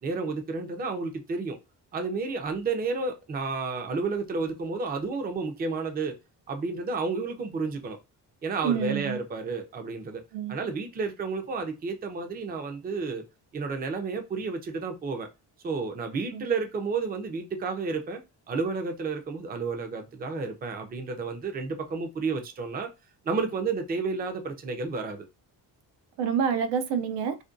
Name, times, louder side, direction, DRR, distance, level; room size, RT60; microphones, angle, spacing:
voice 1, 0.0-1.6 1.9-6.2 6.5-8.0 8.4-10.2 10.5-13.2 13.5-15.3 15.6-22.9 23.2-25.3, right 4 dB, 25° right, 0.4 m, -31 dB
voice 2, 8.6-9.2 10.3-10.5 16.3-16.4 26.2-27.4, right 7 dB, 85° right, 0.5 m, -27 dB
2.4 x 2.2 x 2.5 m
cardioid pair, 135°, 42 cm